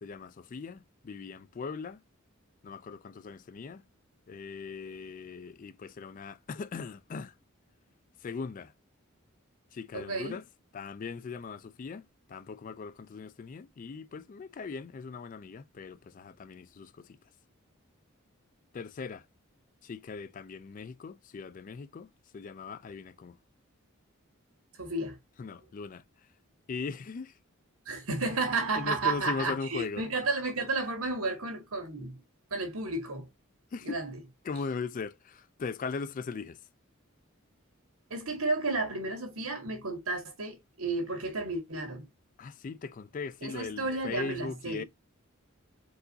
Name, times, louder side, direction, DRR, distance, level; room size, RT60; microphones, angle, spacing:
voice 1, 0.0-2.0 2.6-3.8 4.3-7.3 8.2-8.7 9.7-10.4 10.7-17.2 18.7-19.2 19.8-23.4 25.4-26.0 26.7-27.3 28.8-30.0 33.7-34.0 34.5-36.6 42.4-44.8, left 5 dB, 40° left, 0.3 m, -39 dB
voice 2, 9.9-10.4 24.8-25.2 27.9-32.2 32.5-33.3 33.8-34.1 38.1-42.0 43.4-44.9, right 3 dB, 90° right, 1.7 m, -32 dB
4.6 x 3.9 x 2.7 m
head